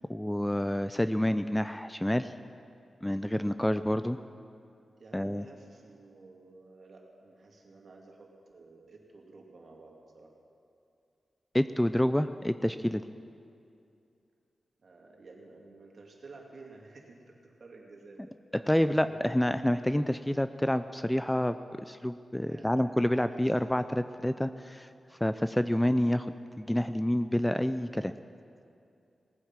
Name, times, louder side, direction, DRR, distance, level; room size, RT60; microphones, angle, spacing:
voice 1, 0.1-2.3 3.0-4.2 5.1-5.4 11.5-13.0 18.7-21.6 21.8-24.9 25.2-26.3 26.6-28.1, left 1 dB, 5° left, 11 dB, 0.4 m, -28 dB
voice 2, 5.0-10.3 14.8-18.2 18.5-19.2 22.5-23.5, right 3 dB, 60° right, 0 dB, 2.5 m, -52 dB
18.0 x 9.8 x 7.4 m, 2.5 s
wide cardioid pair, 95°, 0 cm